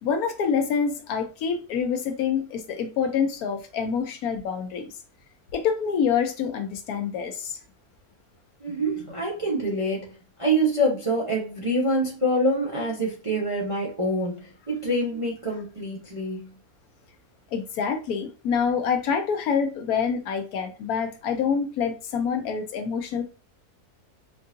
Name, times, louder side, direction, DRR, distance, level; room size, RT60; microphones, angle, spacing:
voice 1, 0.0-4.9 5.5-7.6 17.5-23.3, left 6 dB, 70° left, 1.0 m, -26 dB
voice 2, 8.6-16.5, right 1 dB, 35° right, 0.5 m, -26 dB
4.5 x 2.6 x 2.4 m
omnidirectional pair, 1.7 m